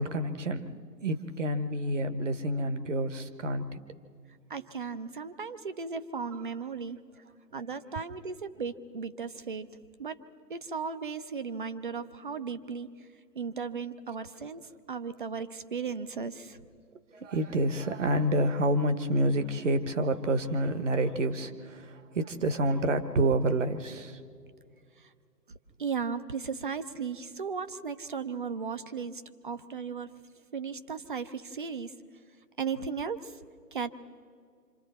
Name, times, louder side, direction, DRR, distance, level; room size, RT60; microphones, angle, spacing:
voice 1, 0.0-3.8 17.1-24.2, right 1 dB, 45° right, 10 dB, 1.2 m, -28 dB
voice 2, 4.5-7.2 7.5-9.7 10.0-10.2 10.5-13.1 13.3-16.6 25.0-25.1 25.5-30.1 30.5-31.9 32.6-33.4 33.7-33.9, right 5 dB, 30° right, 11 dB, 0.6 m, -36 dB
27.0 x 26.5 x 4.3 m, 2.2 s
figure-of-eight pair, 135°, 49 cm